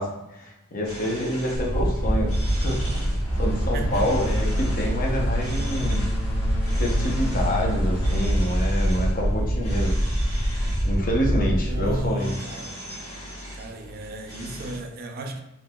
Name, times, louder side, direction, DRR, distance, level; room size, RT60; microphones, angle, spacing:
voice 1, 0.0-6.0 6.7-9.9 10.8-12.3, equal, 40° left, 0.7 m, -27 dB
sound 1, 0.8-14.8, equal, 70° left, 1.3 m, -39 dB
sound 2, 1.6-12.1, equal, 5° right, 0.8 m, -25 dB
sound 3, 2.5-8.2, equal, 10° left, 1.4 m, -35 dB
voice 2, 3.7-4.2 11.7-12.8 13.5-15.4, right 1 dB, 45° right, 0.4 m, -34 dB
3.8 x 2.8 x 2.2 m
head